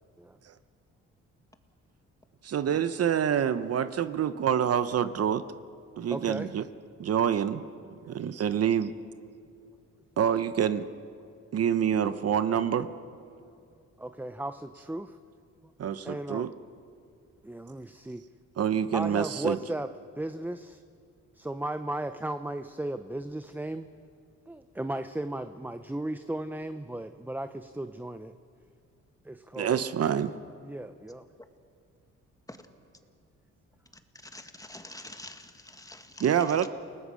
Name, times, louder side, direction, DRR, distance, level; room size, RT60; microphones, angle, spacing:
voice 1, 2.4-5.4 6.0-6.6 7.0-7.6 8.1-8.9 10.2-10.9 11.5-12.9 15.8-16.5 18.6-19.6 29.6-30.3 36.2-36.7, right 8 dB, 55° right, 12 dB, 0.9 m, -26 dB
voice 2, 6.1-6.5 14.0-15.2 16.0-16.5 17.4-18.2 18.9-19.9 20.2-20.8 21.3-23.9 24.5-28.3 29.2-29.8 30.6-31.3, right 1 dB, 5° right, 9 dB, 0.7 m, -35 dB
voice 3, 34.2-36.7, left 2 dB, 10° left, 7 dB, 1.9 m, -46 dB
29.5 x 19.0 x 6.4 m, 2.3 s
cardioid pair, 90°, 30 cm